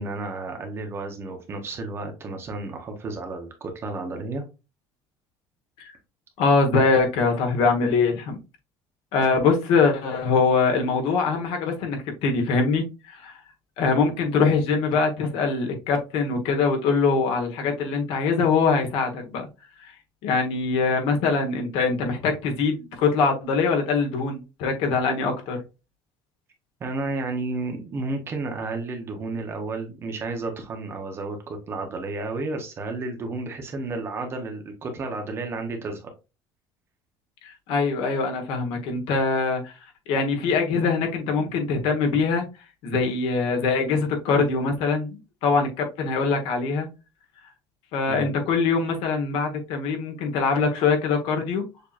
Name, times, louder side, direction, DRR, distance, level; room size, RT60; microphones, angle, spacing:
voice 1, 0.0-4.4 9.2-9.3 26.8-36.1 48.1-48.3, right 3 dB, 25° right, 4 dB, 0.8 m, -32 dB
voice 2, 6.4-8.4 9.1-13.4 13.8-19.5 19.8-19.9 20.2-25.6 37.4-39.7 40.1-42.4 42.8-46.9 47.9-51.6, left 4 dB, 70° left, 3 dB, 1.3 m, -23 dB
6.6 x 2.9 x 2.4 m, 0.28 s
cardioid pair, 180°, 10 cm